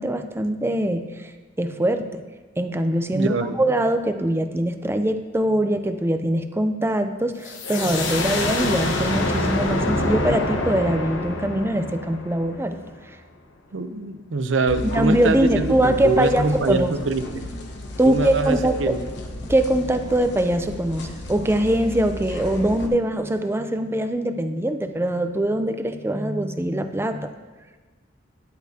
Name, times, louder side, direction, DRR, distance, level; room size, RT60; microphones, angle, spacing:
voice 1, 0.0-1.3 1.6-2.2 2.6-12.8 14.9-17.0 18.0-19.0 19.5-27.3, right 1 dB, 15° right, 8 dB, 0.5 m, -22 dB
voice 2, 3.1-3.6 13.7-17.5 18.1-19.0, right 3 dB, 80° right, 9 dB, 0.6 m, -24 dB
sound 1, 7.4-13.0, left 2 dB, 85° left, 1.1 m, -26 dB
sound 2, 14.7-22.9, left 1 dB, 65° left, 1.0 m, -34 dB
11.5 x 10.5 x 2.8 m, 1.3 s
head